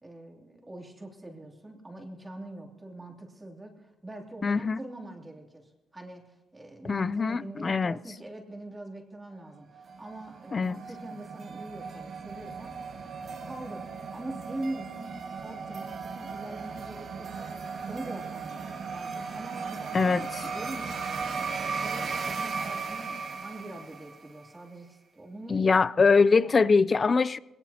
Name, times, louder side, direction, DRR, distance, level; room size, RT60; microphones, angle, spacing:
voice 1, 0.0-12.7 13.4-17.5 17.8-20.2 20.5-26.0 26.4-26.8, right 1 dB, 15° right, 2.9 m, -43 dB
voice 2, 4.4-4.8 6.8-7.9 10.5-10.7 19.9-20.3 25.5-27.4, left 4 dB, 35° left, 0.4 m, -23 dB
sound 1, 9.7-24.4, right 5 dB, 55° right, 1.8 m, -36 dB
22.0 x 19.0 x 2.9 m
cardioid pair, 90°, 0 cm